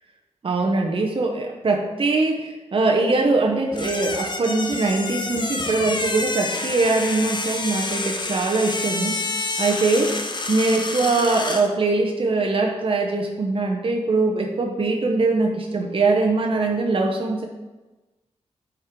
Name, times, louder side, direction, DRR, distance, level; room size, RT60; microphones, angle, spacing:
voice 1, 0.4-9.3 9.6-10.1 10.5-17.4, right 3 dB, 50° right, 1 dB, 0.8 m, -22 dB
sound 1, 3.7-11.7, left 3 dB, 40° left, 0.8 m, -28 dB
10.0 x 4.6 x 3.7 m, 1.1 s
wide cardioid pair, 100°, 11 cm